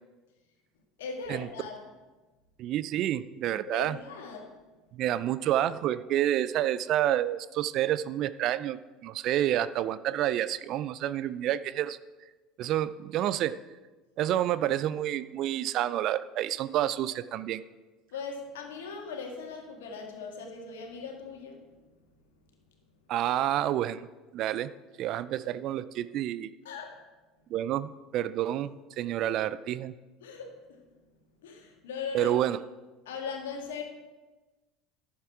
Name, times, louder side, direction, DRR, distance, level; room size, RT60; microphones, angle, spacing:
voice 1, 1.0-1.7 3.7-4.6 18.1-21.7 26.7-27.0 30.2-30.8 31.4-32.3 33.1-33.8, left 5 dB, 75° left, 2 dB, 1.8 m, -39 dB
voice 2, 2.6-4.0 4.9-12.0 12.6-13.6 14.2-17.6 23.1-24.1 24.3-24.7 25.0-26.5 27.5-29.9 32.1-32.6, right 12 dB, 55° right, 15 dB, 0.4 m, -29 dB
11.0 x 7.3 x 4.7 m, 1.2 s
hypercardioid pair, 70°, 0 cm